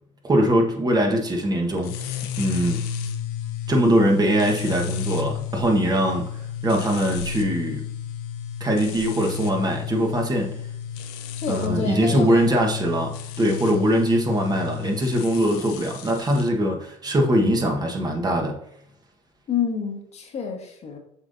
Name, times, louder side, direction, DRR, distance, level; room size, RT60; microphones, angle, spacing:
voice 1, 0.2-2.8 3.7-6.3 6.6-7.8 8.6-10.6 11.5-18.6, right 1 dB, 25° right, 1 dB, 1.3 m, -22 dB
sound 1, 1.8-16.5, left 8 dB, 70° left, 0.8 m, -32 dB
voice 2, 11.4-12.5 19.5-21.0, left 6 dB, 40° left, 3 dB, 1.4 m, -28 dB
7.5 x 5.0 x 2.7 m, 0.73 s
hypercardioid pair, 80°, 16 cm